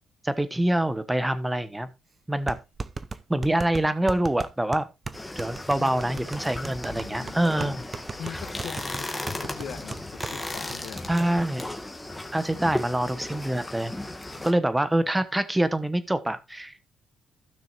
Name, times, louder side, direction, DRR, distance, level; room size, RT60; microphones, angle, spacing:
voice 1, 0.2-1.9 2.3-2.6 3.3-4.9 5.4-7.8 11.1-11.7 12.3-13.9 14.4-16.7, right 1 dB, 10° right, 1.2 m, -25 dB
sound 1, 2.5-10.4 10.7-10.8 11.1-11.5, right 4 dB, 30° right, 0.7 m, -37 dB
sound 2, 5.1-14.5, left 1 dB, 10° left, 1.7 m, -36 dB
voice 2, 6.9-7.8 8.1-9.1 9.4-11.1 14.3-14.6, left 8 dB, 70° left, 1.4 m, -41 dB
15.5 x 6.3 x 2.6 m
cardioid pair, 90°, 0 cm